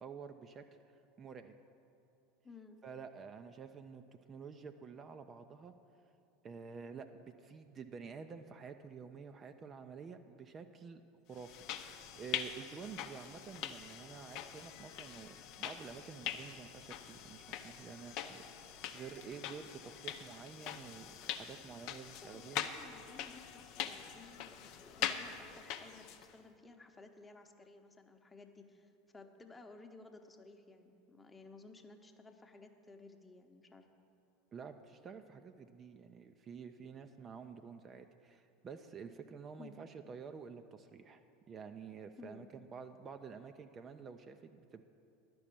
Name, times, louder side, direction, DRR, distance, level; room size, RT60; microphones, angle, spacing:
voice 1, 0.0-1.6 2.8-4.0 4.3-5.7 6.4-11.0 11.3-22.7 34.5-41.2 41.5-42.5 42.7-44.8, right 6 dB, 30° right, 7 dB, 0.5 m, -50 dB
voice 2, 2.4-2.8 22.0-33.9 39.6-39.8 42.2-42.5, left 3 dB, 15° left, 5 dB, 0.9 m, -56 dB
sound 1, 11.4-26.3, left 9 dB, 50° left, 0.6 m, -43 dB
11.0 x 6.2 x 8.4 m, 2.7 s
figure-of-eight pair, 75°, 0 cm